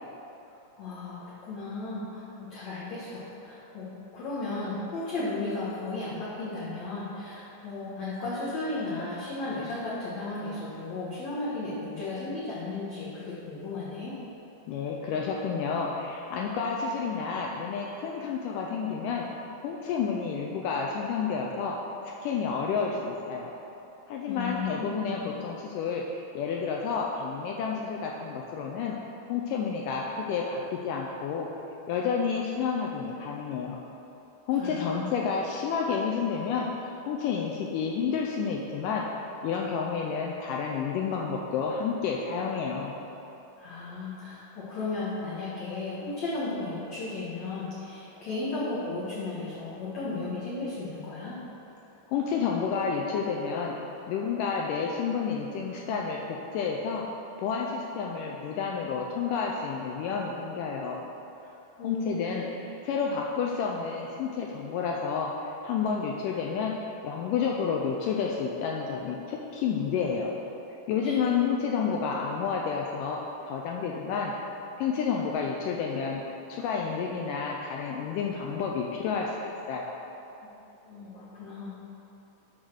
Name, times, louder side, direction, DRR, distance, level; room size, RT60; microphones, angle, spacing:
voice 1, 0.5-3.9 4.1-14.1 24.3-25.3 34.6-35.1 43.6-51.4 61.8-62.3 71.0-71.2 80.4-80.5 80.9-81.7, left 2 dB, 60° left, -9 dB, 2.0 m, -35 dB
voice 2, 14.7-19.3 19.6-21.8 22.2-23.5 24.1-26.0 26.4-29.0 29.3-31.5 31.9-33.8 34.5-39.1 39.4-42.9 52.1-53.7 54.1-57.0 57.4-61.0 61.8-66.8 67.0-70.3 70.9-74.3 74.8-76.2 76.5-79.3 79.7-80.0, left 6 dB, 90° left, -1 dB, 1.9 m, -30 dB
10.5 x 4.0 x 6.4 m, 3.0 s
omnidirectional pair, 4.3 m